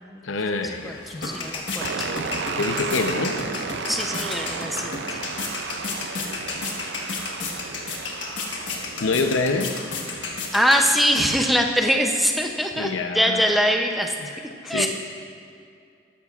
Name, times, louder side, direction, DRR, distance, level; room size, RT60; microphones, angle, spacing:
voice 1, 0.2-1.0 2.6-3.4 9.0-9.8 12.8-13.4 14.3-14.4 14.7-14.9, left 3 dB, 85° left, 6 dB, 0.7 m, -25 dB
sound 1, 0.6-11.3, left 3 dB, 65° left, 1.4 m, -32 dB
voice 2, 0.8-2.1 3.9-5.0 10.5-14.1 14.6-14.9, equal, ahead, 2 dB, 0.6 m, -23 dB
sound 2, 1.8-10.5, right 5 dB, 60° right, 0.4 m, -34 dB
14.5 x 12.0 x 2.4 m, 2.3 s
head